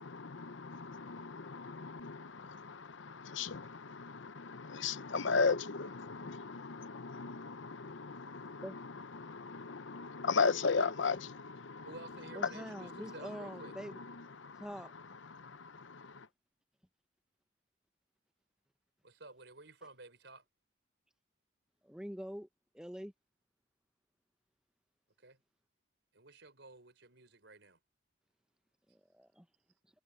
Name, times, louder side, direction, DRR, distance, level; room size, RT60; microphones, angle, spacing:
voice 1, 0.0-16.3, left 4 dB, 75° left, 0.8 m, -37 dB
voice 2, 10.3-11.1 11.9-13.7 19.0-20.4 25.2-25.4 26.1-27.8, right 2 dB, 65° right, 4.9 m, -53 dB
voice 3, 12.3-14.0 14.6-14.9 21.8-22.5 22.7-23.1 28.9-29.5, equal, 5° right, 0.8 m, -45 dB
head